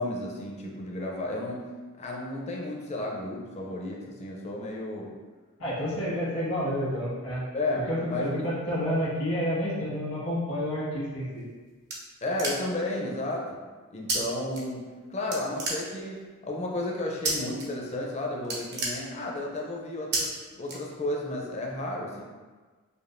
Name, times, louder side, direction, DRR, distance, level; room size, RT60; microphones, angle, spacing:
voice 1, 0.0-1.7 2.0-5.1 5.9-6.1 7.5-8.5 12.2-13.6 13.9-20.3 20.6-22.2, left 1 dB, 35° left, -1 dB, 0.5 m, -33 dB
voice 2, 5.6-7.4 7.9-11.4, equal, 80° left, -8 dB, 1.4 m, -29 dB
sound 1, 11.2-12.9 14.1-14.2 14.5-15.0 15.3-16.3 17.2-17.6 18.0-18.1 18.4-19.5 20.1-20.2 20.6-21.3, right 3 dB, 50° right, 0.8 m, -31 dB
5.1 x 2.4 x 2.5 m, 1.4 s
head